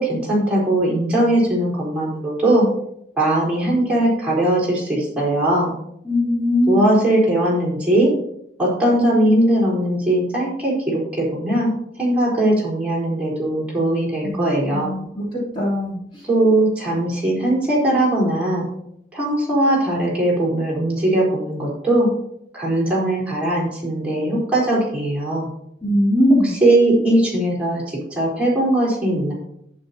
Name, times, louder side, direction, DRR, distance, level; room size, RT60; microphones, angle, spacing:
voice 1, 0.0-2.7 3.2-5.7 6.7-8.1 8.6-11.7 12.0-14.9 16.2-18.7 19.1-22.1 22.5-25.5 26.4-29.3, right 1 dB, 5° right, -7 dB, 4.1 m, -19 dB
voice 2, 6.0-6.8 14.2-14.4 14.7-16.3 25.8-26.5, left 1 dB, 30° left, -7 dB, 3.1 m, -20 dB
11.5 x 9.5 x 2.9 m, 0.75 s
head